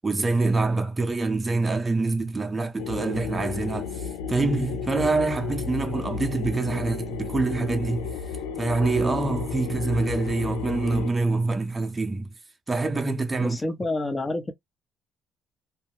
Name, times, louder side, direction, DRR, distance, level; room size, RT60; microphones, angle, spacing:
voice 1, 0.0-8.2 8.6-12.3 12.7-13.6, right 3 dB, 25° right, 0.6 m, -25 dB
sound 1, 2.8-11.1, left 6 dB, 85° left, 0.3 m, -33 dB
voice 2, 13.4-14.5, left 2 dB, 25° left, 0.8 m, -28 dB
2.2 x 2.2 x 3.0 m
hypercardioid pair, 55°, 0 cm